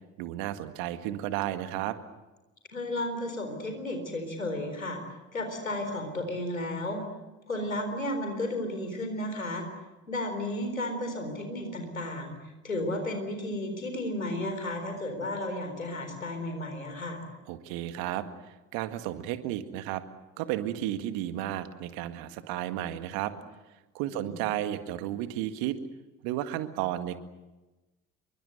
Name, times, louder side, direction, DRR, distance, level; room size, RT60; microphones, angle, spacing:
voice 1, 0.2-2.0 17.5-20.0 20.4-23.5 23.9-25.8 26.2-27.2, right 13 dB, 65° right, 10 dB, 2.0 m, -33 dB
voice 2, 2.7-5.0 5.3-7.0 7.5-9.6 10.1-17.2 24.1-24.3, left 1 dB, 90° left, 5 dB, 4.2 m, -33 dB
27.5 x 23.5 x 8.0 m, 1.1 s
figure-of-eight pair, 55°, 40 cm